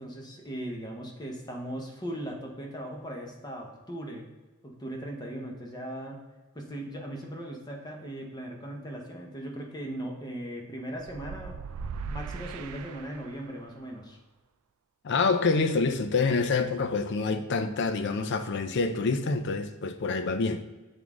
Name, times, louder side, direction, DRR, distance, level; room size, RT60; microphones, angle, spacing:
voice 1, 0.0-4.3 4.6-6.2 6.5-11.6 12.1-14.2, right 1 dB, 20° left, 1 dB, 0.9 m, -38 dB
sound 1, 11.0-13.6, right 5 dB, 90° right, 0.3 m, -39 dB
voice 2, 15.0-20.6, left 4 dB, 55° left, 9 dB, 0.5 m, -27 dB
7.8 x 3.6 x 3.7 m, 1.2 s
head